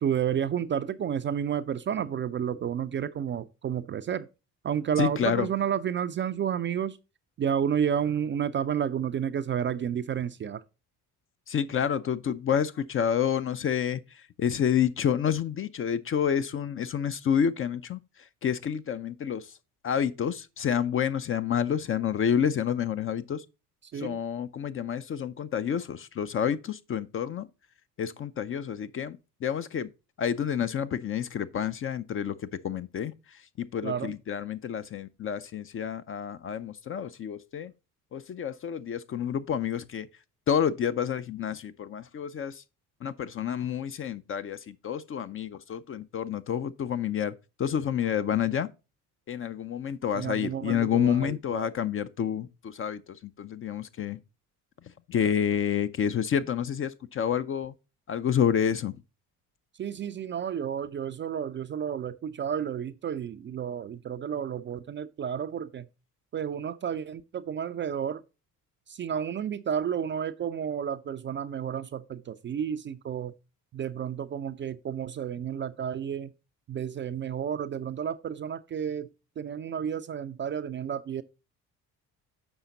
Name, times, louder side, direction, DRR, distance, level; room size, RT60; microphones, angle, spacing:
voice 1, 0.0-4.3 4.6-7.0 7.4-10.6 23.9-24.2 33.8-34.1 50.1-51.7 59.8-65.9 66.3-68.2 68.9-73.3 73.7-76.3 76.7-79.1 79.4-81.2, right 8 dB, 25° right, 0.4 m, -31 dB
voice 2, 5.0-5.5 11.5-18.0 18.4-19.5 19.8-23.4 23.9-27.5 28.0-29.9 30.2-32.3 32.6-37.7 38.1-40.1 40.5-42.6 43.0-48.7 49.3-54.2 55.1-57.7 58.1-58.9, left 8 dB, 30° left, 0.5 m, -29 dB
7.1 x 5.6 x 3.9 m
figure-of-eight pair, 50°, 46 cm